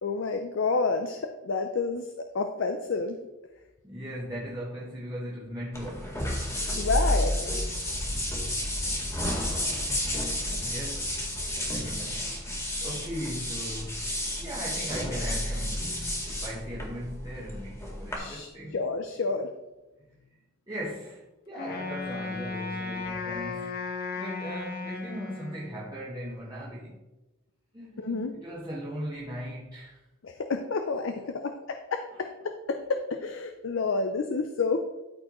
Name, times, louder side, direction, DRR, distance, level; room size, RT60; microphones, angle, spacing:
voice 1, 0.0-2.1 2.3-3.2 6.8-7.5 18.2-18.5 18.7-19.5 28.0-28.3 30.2-32.3 32.7-34.8, left 4 dB, 65° left, 6 dB, 0.5 m, -29 dB
voice 2, 3.8-6.3 10.2-11.3 11.7-14.1 14.4-18.8 20.7-23.9 24.2-27.0 27.7-30.0 31.1-31.2, equal, 20° right, -6 dB, 1.3 m, -39 dB
sound 1, 5.7-18.2, left 1 dB, 15° left, 1.8 m, -31 dB
Wind instrument woodwind instrument, 21.6-26.0, left 4 dB, 50° left, 1.1 m, -35 dB
13.0 x 4.4 x 3.1 m, 1.0 s
head